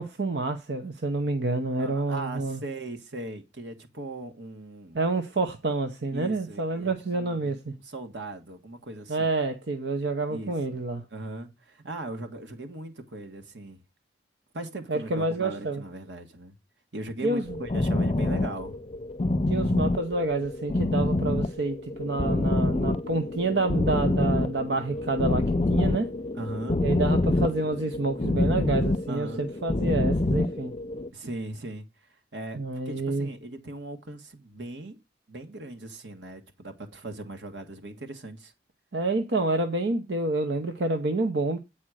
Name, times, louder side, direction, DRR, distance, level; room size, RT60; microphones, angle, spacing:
voice 1, 0.0-2.6 4.9-7.7 9.1-11.0 14.9-15.8 17.2-17.6 19.5-26.1 26.8-30.7 32.5-33.3 38.9-41.6, right 2 dB, 70° right, 0.8 m, -28 dB
voice 2, 1.8-5.0 6.1-7.5 7.8-9.3 10.3-10.8 11.1-13.8 14.5-16.5 16.9-18.8 26.4-26.8 29.1-29.5 31.1-31.9 32.3-35.0 35.3-38.5, right 2 dB, 90° right, 1.6 m, -38 dB
sound 1, 17.5-31.1, left 2 dB, 30° left, 0.6 m, -26 dB
8.7 x 4.3 x 6.3 m
head